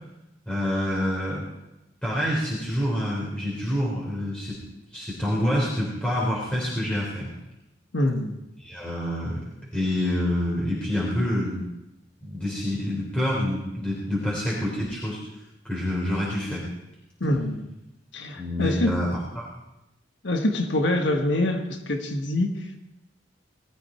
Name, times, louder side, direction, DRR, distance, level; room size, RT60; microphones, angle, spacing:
voice 1, 0.5-1.4 2.0-4.6 4.9-7.3 8.6-9.4 9.7-11.6 12.2-15.2 15.6-16.6 18.4-19.1 19.4-19.5, equal, 5° left, -7 dB, 3.6 m, -27 dB
voice 2, 7.9-8.4 17.2-17.7 18.1-19.0 20.2-22.9, left 1 dB, 75° left, 5 dB, 1.4 m, -25 dB
20.0 x 13.0 x 4.4 m, 0.95 s
head